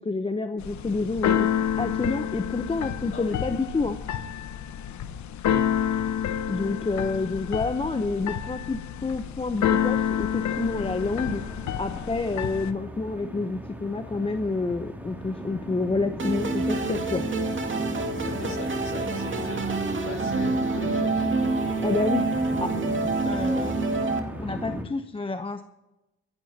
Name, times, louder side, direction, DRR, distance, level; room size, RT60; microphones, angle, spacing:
voice 1, 0.0-1.5 1.8-4.0 6.5-11.4 11.8-17.2 21.8-22.3 22.6-22.7 23.2-23.7 24.4-25.6, left 3 dB, 20° left, 8 dB, 0.8 m, -28 dB
Keyboard (musical), 0.6-12.7, left 9 dB, 70° left, 1.0 m, -29 dB
sound 1, 10.4-24.8, equal, 5° right, 2.5 m, -37 dB
sound 2, 16.2-24.2, right 3 dB, 40° right, 2.4 m, -27 dB
voice 2, 18.1-21.3, left 4 dB, 45° left, 2 dB, 5.1 m, -39 dB
28.0 x 11.5 x 2.8 m, 0.98 s
cardioid pair, 90°, 30 cm